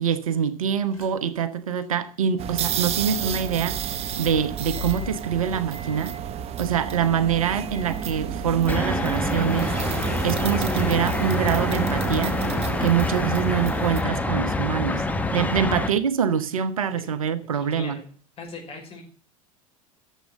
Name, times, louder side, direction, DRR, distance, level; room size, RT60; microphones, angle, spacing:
voice 1, 0.0-3.8 4.2-6.1 6.6-9.7 10.2-12.4 12.8-15.0 15.3-18.0, right 8 dB, 75° right, 1.1 m, -25 dB
sound 1, 0.9-1.4 1.8-1.9 3.1-13.7, left 3 dB, 80° left, 4.5 m, -43 dB
sound 2, 2.4-14.0, right 9 dB, 35° right, 0.9 m, -31 dB
sound 3, 8.7-15.9, left 2 dB, 10° left, 1.2 m, -26 dB
voice 2, 17.5-18.0 18.4-19.0, left 3 dB, 35° left, 5.5 m, -39 dB
10.5 x 7.5 x 7.6 m
figure-of-eight pair, 85°, 18 cm